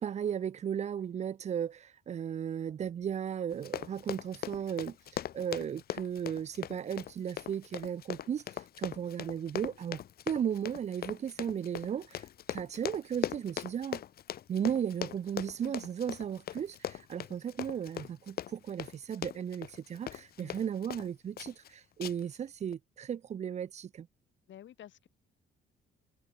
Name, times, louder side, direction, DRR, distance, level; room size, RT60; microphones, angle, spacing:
voice 1, 0.0-5.0 5.3-8.4 8.8-10.0 10.3-12.2 12.5-14.0 14.5-24.1, right 8 dB, 35° right, 0.4 m, -35 dB
Run, 3.5-21.1 21.4-21.7 22.0-22.4 22.7-22.8, left 11 dB, 50° left, 0.5 m, -40 dB
voice 2, 24.5-25.1, left 11 dB, 70° left, 2.5 m, -51 dB
cardioid pair, 90°, 20 cm